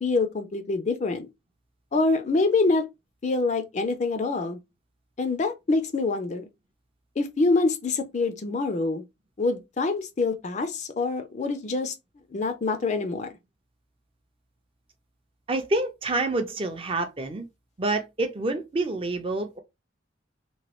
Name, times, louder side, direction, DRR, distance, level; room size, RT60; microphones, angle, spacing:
voice 1, 0.0-1.3 1.9-2.9 3.2-4.6 5.2-6.5 7.2-9.0 9.4-11.9 12.3-13.3, left 3 dB, 35° left, 0.4 m, -25 dB
voice 2, 15.5-17.5 17.8-19.6, right 2 dB, 30° right, 0.4 m, -27 dB
3.0 x 2.2 x 3.0 m
head